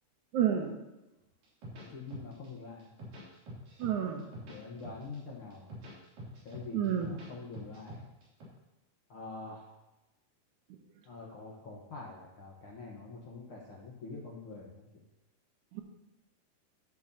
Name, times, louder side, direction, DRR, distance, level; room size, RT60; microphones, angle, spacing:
voice 1, 0.3-0.7 3.8-4.2 6.7-7.1 15.7-15.8, right 9 dB, 70° right, 4 dB, 2.1 m, -29 dB
sound 1, 1.4-2.5 2.8-3.9 4.2-5.2 5.5-7.3 7.5-8.4, equal, 90° right, 4.7 m, -46 dB
voice 2, 1.7-2.9 4.5-5.7 6.4-8.1 9.1-9.7 11.1-14.9, left 3 dB, 55° left, -3 dB, 1.6 m, -45 dB
12.5 x 10.5 x 2.8 m, 1.0 s
omnidirectional pair, 3.8 m